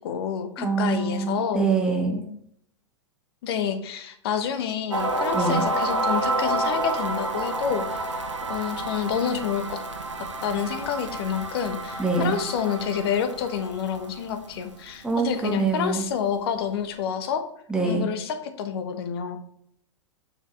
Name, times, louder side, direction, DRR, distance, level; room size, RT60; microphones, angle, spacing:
voice 1, 0.0-1.7 3.4-9.8 10.2-17.5 17.8-19.4, left 8 dB, 55° left, 8 dB, 1.2 m, -29 dB
voice 2, 0.6-2.3 5.3-5.6 12.0-12.4 15.0-16.1 17.7-18.1, right 4 dB, 5° right, 0 dB, 1.7 m, -25 dB
sound 1, 4.9-14.8, right 2 dB, 80° right, 1.0 m, -29 dB
7.0 x 5.6 x 3.4 m, 0.69 s
figure-of-eight pair, 100°, 15 cm